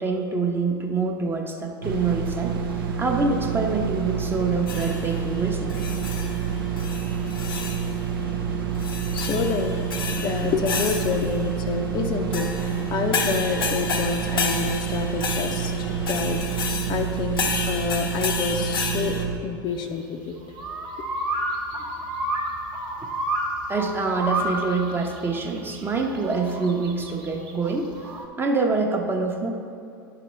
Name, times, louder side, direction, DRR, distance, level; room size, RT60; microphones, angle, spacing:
voice 1, 0.0-2.5 3.0-5.9 23.0-23.1 23.7-27.9 28.4-29.5, right 3 dB, 20° right, 2 dB, 0.8 m, -26 dB
sound 1, 1.8-19.4, right 7 dB, 80° right, 0.7 m, -28 dB
sound 2, 4.7-5.2 5.7-6.5 6.8-8.0 8.8-11.4 12.3-19.2, left 5 dB, 80° left, 0.8 m, -31 dB
voice 2, 9.1-9.8 10.1-20.3, left 6 dB, 40° left, 5 dB, 0.5 m, -28 dB
sound 3, 19.7-28.3, right 1 dB, 40° right, 1.1 m, -31 dB
9.7 x 5.9 x 3.1 m, 2.5 s
hypercardioid pair, 90°, 12 cm